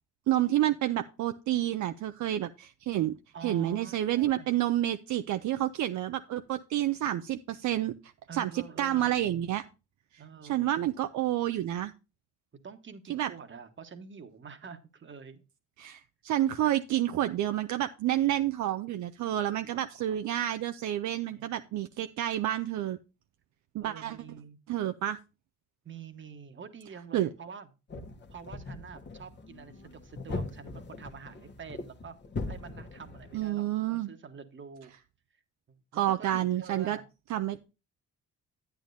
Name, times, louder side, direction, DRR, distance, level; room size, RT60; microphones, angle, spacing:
voice 1, 0.3-3.1 3.4-7.9 8.3-9.6 10.4-11.9 13.1-13.3 15.8-23.0 23.7-24.2 24.7-25.2 27.1-27.3 33.3-34.1 35.9-37.0 37.3-37.6, right 13 dB, 70° right, 9 dB, 0.5 m, -29 dB
voice 2, 3.3-4.5 8.3-9.2 10.2-10.7 12.6-15.4 15.8-16.0 16.6-16.7 19.7-20.2 21.3-21.5 23.8-24.6 25.8-27.7 28.3-32.1 32.5-34.9 35.7-37.0, right 6 dB, 40° right, 8 dB, 1.2 m, -47 dB
sound 1, 27.9-33.5, left 3 dB, 35° left, 1.1 m, -40 dB
10.5 x 8.8 x 2.6 m, 0.30 s
cardioid pair, 90°, 30 cm